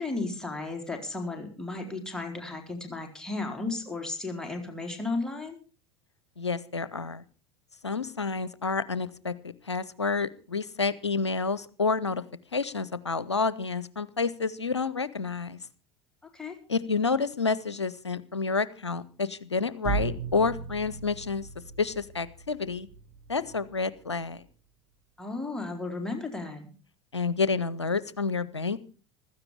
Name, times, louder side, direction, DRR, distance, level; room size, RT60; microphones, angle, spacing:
voice 1, 0.0-5.6 16.3-16.6 25.2-26.6, left 3 dB, 5° left, 2 dB, 4.0 m, -34 dB
voice 2, 6.4-7.2 7.8-12.2 12.5-15.6 16.7-21.5 21.8-22.9 23.3-24.4 27.1-28.8, left 4 dB, 85° left, 18 dB, 0.7 m, -29 dB
sound 1, 19.8-23.7, right 5 dB, 80° right, 7.0 m, -36 dB
15.5 x 13.5 x 5.0 m, 0.37 s
figure-of-eight pair, 70°, 14 cm